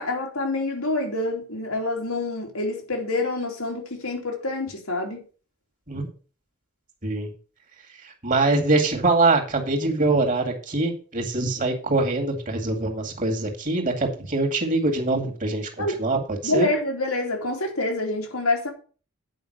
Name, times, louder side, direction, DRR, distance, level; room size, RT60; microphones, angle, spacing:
voice 1, 0.0-5.2 15.8-16.0 16.4-18.7, left 2 dB, 85° left, 2.8 m, -27 dB
voice 2, 8.0-16.7, right 2 dB, 35° right, 2.2 m, -23 dB
9.4 x 5.4 x 6.6 m
head